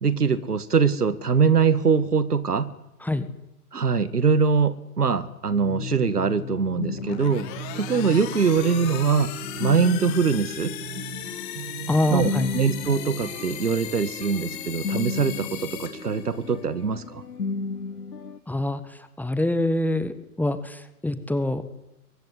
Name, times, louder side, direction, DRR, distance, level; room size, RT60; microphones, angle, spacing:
voice 1, 0.0-2.7 3.7-7.5 7.7-9.3 9.6-10.7 12.1-17.2, right 5 dB, 80° right, 16 dB, 1.8 m, -23 dB
sound 1, 5.5-18.4, left 4 dB, 80° left, 1.4 m, -35 dB
sound 2, 6.9-16.6, left 13 dB, 35° left, 3.3 m, -38 dB
sound 3, 7.6-17.4, right 9 dB, 50° right, 2.1 m, -42 dB
voice 2, 11.9-12.5 18.5-21.6, left 1 dB, 5° left, 12 dB, 1.6 m, -25 dB
23.0 x 21.5 x 9.8 m, 0.88 s
figure-of-eight pair, 105°, 46 cm